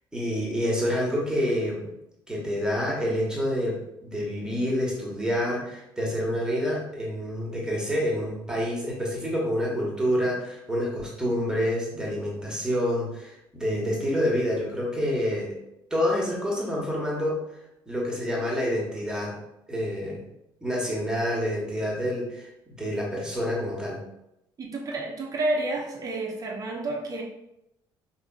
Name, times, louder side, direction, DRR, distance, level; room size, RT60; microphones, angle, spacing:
voice 1, 0.1-1.9 2.3-15.5 15.9-17.4 17.9-19.3 19.7-20.2 20.6-22.5 22.8-24.0, equal, 5° right, -4 dB, 1.3 m, -27 dB
voice 2, 24.6-27.2, right 2 dB, 30° right, 0 dB, 0.7 m, -30 dB
4.8 x 2.6 x 2.3 m, 0.85 s
figure-of-eight pair, 55°, 13 cm